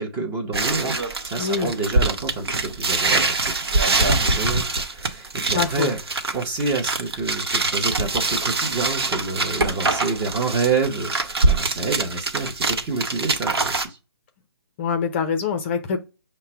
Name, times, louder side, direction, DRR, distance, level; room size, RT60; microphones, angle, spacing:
voice 1, 0.0-6.0 6.3-14.0, right 3 dB, 15° right, 0.7 m, -28 dB
sound 1, 0.5-13.9, right 3 dB, 70° right, 0.9 m, -24 dB
voice 2, 1.4-1.7 5.5-5.9 14.8-16.0, left 6 dB, 30° left, 0.5 m, -24 dB
5.6 x 2.1 x 4.3 m
figure-of-eight pair, 145°, 13 cm